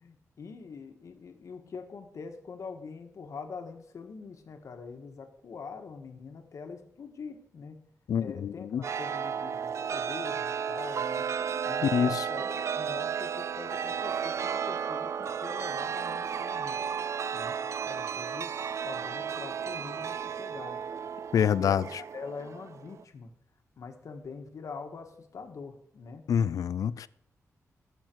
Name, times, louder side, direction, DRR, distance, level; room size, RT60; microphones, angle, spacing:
voice 1, 0.0-7.8 8.2-11.3 11.6-16.9 17.3-17.6 17.8-18.5 18.8-20.8 21.3-23.3 23.8-26.3, left 5 dB, 65° left, 1.7 m, -44 dB
voice 2, 8.1-8.8 11.8-12.3 21.3-21.8 26.3-27.1, left 8 dB, 80° left, 0.4 m, -26 dB
Chime, 8.8-23.0, right 7 dB, 55° right, 0.4 m, -33 dB
17.0 x 7.8 x 4.7 m
wide cardioid pair, 130°, 6 cm